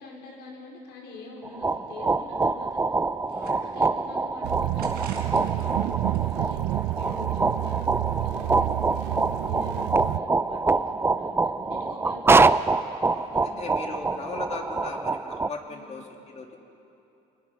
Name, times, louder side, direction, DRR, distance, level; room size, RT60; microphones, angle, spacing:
voice 1, 0.0-12.5 13.3-13.6 13.9-14.2 15.6-15.9, left 3 dB, 80° left, -1 dB, 4.9 m, -45 dB
sound 1, 1.5-15.5, right 3 dB, 15° right, 0.4 m, -25 dB
sound 2, 3.2-4.1 4.8-5.7 6.0-7.2, right 5 dB, 70° right, 4.5 m, -47 dB
sound 3, 4.4-10.2, right 17 dB, 90° right, 0.5 m, -29 dB
voice 2, 13.1-16.6, left 4 dB, 40° left, 2 dB, 2.8 m, -38 dB
28.5 x 20.5 x 5.7 m, 2.9 s
cardioid pair, 110°, 17 cm